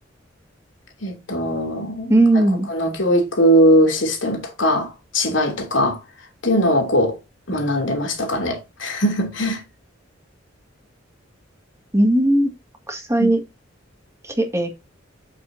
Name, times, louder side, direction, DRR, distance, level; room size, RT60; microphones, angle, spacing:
voice 1, 1.0-2.4 2.7-6.0 6.4-7.2 7.5-9.6 13.2-13.3, equal, 80° left, 3.2 m, -20 dB
voice 2, 2.1-2.7 11.9-12.5 12.9-13.4 14.2-14.7, right 1 dB, 15° right, 2.1 m, -17 dB
8.2 x 7.4 x 2.7 m
head